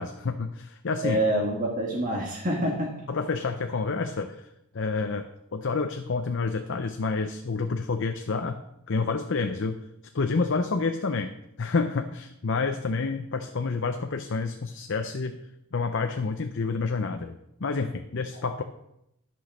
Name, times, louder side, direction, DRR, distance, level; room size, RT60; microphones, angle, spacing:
voice 1, 0.0-1.2 3.1-4.5 4.7-8.6 8.9-9.8 10.1-11.3 11.6-15.4 15.7-18.6, left 4 dB, 55° left, 7 dB, 0.6 m, -29 dB
voice 2, 1.0-2.9, right 1 dB, 35° right, -2 dB, 1.6 m, -26 dB
11.0 x 6.2 x 6.1 m, 0.82 s
head